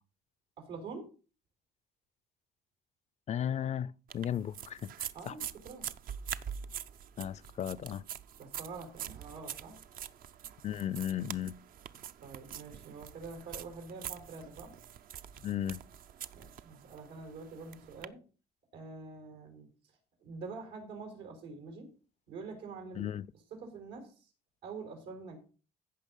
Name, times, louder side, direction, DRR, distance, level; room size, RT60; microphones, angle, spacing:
voice 1, 0.6-1.1 5.1-5.8 8.4-9.8 12.2-14.7 16.3-18.2 18.7-19.7 20.2-21.9 22.3-23.1 23.5-24.3 24.6-25.4, right 4 dB, 90° right, 4.5 m, -46 dB
voice 2, 3.3-5.3 7.2-8.0 10.6-11.5 15.4-15.8 23.0-23.3, left 10 dB, 40° left, 0.4 m, -35 dB
sound 1, 4.1-18.1, right 9 dB, 55° right, 0.7 m, -45 dB
15.0 x 5.7 x 5.4 m
cardioid pair, 110°, 17 cm